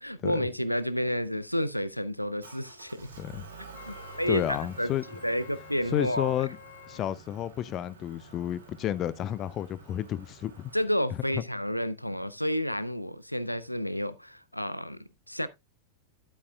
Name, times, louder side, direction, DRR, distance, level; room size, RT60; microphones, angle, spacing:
voice 1, 0.0-3.1 3.9-4.9 5.2-6.4 10.7-15.0 15.3-15.5, equal, 90° left, 0.5 m, -30 dB
Motor vehicle (road) / Engine, 2.4-10.8, right 4 dB, 70° right, 2.6 m, -49 dB
Wind instrument woodwind instrument, 3.7-7.1, left 11 dB, 50° left, 2.5 m, -50 dB
voice 2, 4.3-5.0 5.9-6.6 6.9-10.7, left 12 dB, 35° left, 0.5 m, -31 dB
11.5 x 8.4 x 2.2 m
figure-of-eight pair, 90°, 0 cm